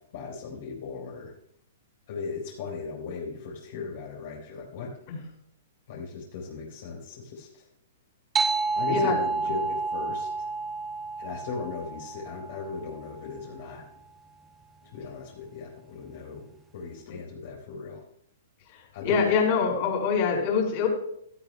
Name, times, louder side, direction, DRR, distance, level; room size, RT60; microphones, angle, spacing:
voice 1, 0.1-1.3 2.1-4.9 5.9-7.6 8.8-10.5 11.2-13.8 14.9-16.5 16.7-18.0 18.9-19.3 19.6-19.7, left 4 dB, 60° left, -3 dB, 4.0 m, -37 dB
sound 1, 8.4-13.3, right 4 dB, 10° right, 0.7 m, -30 dB
voice 2, 19.0-20.9, left 6 dB, 40° left, 0 dB, 5.0 m, -24 dB
17.0 x 13.5 x 2.3 m, 0.71 s
hypercardioid pair, 150°, 0 cm